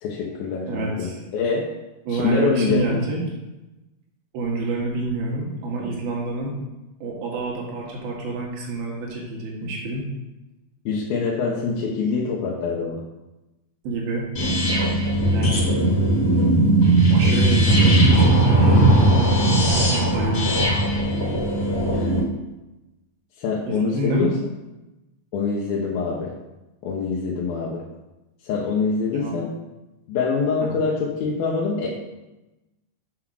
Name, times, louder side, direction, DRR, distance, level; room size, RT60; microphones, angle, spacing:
voice 1, 0.0-1.7 2.1-3.0 10.9-13.0 21.9-22.1 23.4-24.4 25.3-26.3 26.8-27.8 28.4-29.5 30.1-31.9, left 5 dB, 80° left, -4 dB, 2.8 m, -25 dB
voice 2, 0.7-1.2 2.1-3.2 4.3-6.6 7.0-10.1 13.8-14.3 15.3-15.7 17.1-20.7 23.7-24.3 29.1-29.4 30.6-30.7, right 3 dB, 80° right, -2 dB, 3.6 m, -28 dB
sound 1, 14.4-22.2, right 1 dB, 35° left, 3.4 m, -18 dB
7.5 x 5.9 x 6.2 m, 1.0 s
omnidirectional pair, 4.2 m